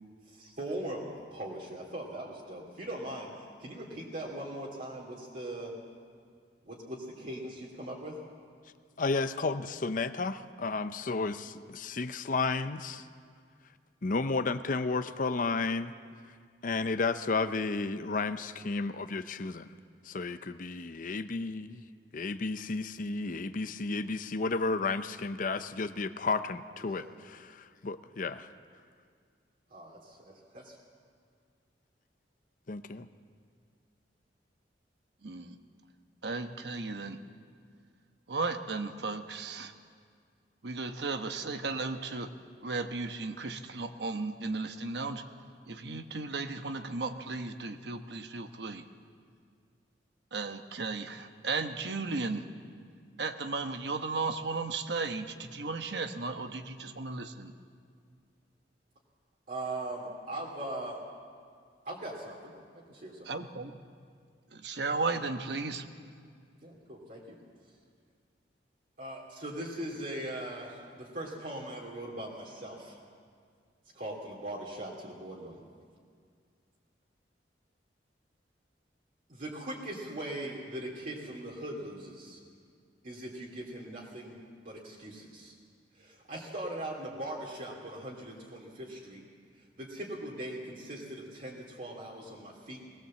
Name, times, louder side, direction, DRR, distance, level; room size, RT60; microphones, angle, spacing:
voice 1, 0.3-5.7 6.6-8.2 26.8-27.1 29.7-30.8 59.5-61.0 61.8-62.5 62.9-63.3 66.6-67.4 69.0-73.0 73.9-75.6 79.3-82.4 83.0-84.4 84.6-85.5 85.9-89.2 89.5-92.8, right 1 dB, 50° right, -5 dB, 2.7 m, -40 dB
voice 2, 9.0-13.1 14.0-15.9 16.6-19.7 20.0-21.8 22.1-28.5 32.7-33.1, left 3 dB, 50° left, 10 dB, 0.6 m, -32 dB
voice 3, 35.2-35.6 36.2-37.2 38.3-39.7 40.6-42.3 42.6-45.2 45.7-48.8 50.3-52.4 53.2-57.5 63.3-63.8 64.5-65.9, right 3 dB, 70° right, 7 dB, 1.1 m, -35 dB
20.0 x 19.0 x 7.6 m, 2.1 s
head